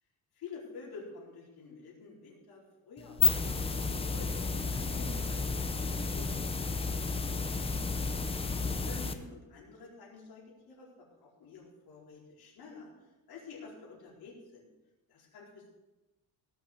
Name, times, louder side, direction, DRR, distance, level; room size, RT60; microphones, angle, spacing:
voice 1, 0.3-4.3 4.7-5.6 5.9-7.7 8.5-12.9 13.3-14.7 15.1-15.7, left 4 dB, 75° left, -4 dB, 4.5 m, -50 dB
sound 1, 3.0-9.1, left 4 dB, 15° left, 0.6 m, -32 dB
17.5 x 6.5 x 6.8 m, 1.1 s
cardioid pair, 175°, 37 cm